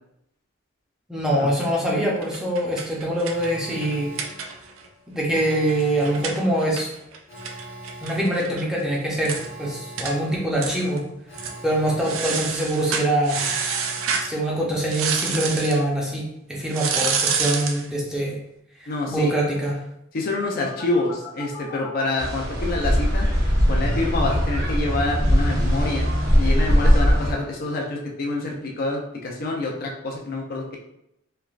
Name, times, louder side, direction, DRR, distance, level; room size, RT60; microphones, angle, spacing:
voice 1, 1.1-4.1 5.1-6.9 8.0-11.0 11.6-13.4 14.3-18.3 19.1-19.8, right 1 dB, 5° right, -4 dB, 0.6 m, -24 dB
sound 1, 2.2-4.9 5.2-5.3 5.5-8.6 8.9-9.0 9.2-9.5 10.0-10.2 10.6-11.0 11.3-11.6 12.0-14.3 14.9-15.8 16.7-17.8, right 6 dB, 80° right, 0.4 m, -28 dB
Alarm, 3.3-15.2 20.6-22.2, equal, 65° left, 0.8 m, -42 dB
voice 2, 18.9-19.3 20.1-23.3 23.7-26.1 26.4-30.8, left 2 dB, 50° left, -1 dB, 0.5 m, -27 dB
sound 2, 22.2-27.3, equal, 55° right, 0.7 m, -20 dB
3.2 x 2.3 x 2.3 m, 0.80 s
head